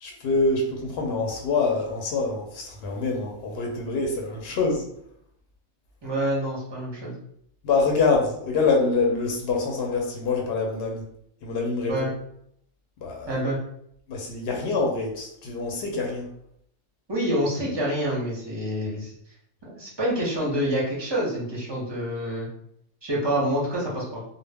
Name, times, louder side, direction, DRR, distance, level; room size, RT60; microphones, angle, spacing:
voice 1, 0.0-4.8 7.6-11.0 11.4-12.0 13.0-13.3 14.1-16.3, left 3 dB, 65° left, 0 dB, 0.7 m, -25 dB
voice 2, 6.0-7.1 11.9-12.1 13.3-13.6 17.1-19.1 19.6-22.5 23.0-24.2, equal, 30° right, -4 dB, 0.5 m, -27 dB
2.1 x 2.1 x 3.3 m, 0.72 s
omnidirectional pair, 1.3 m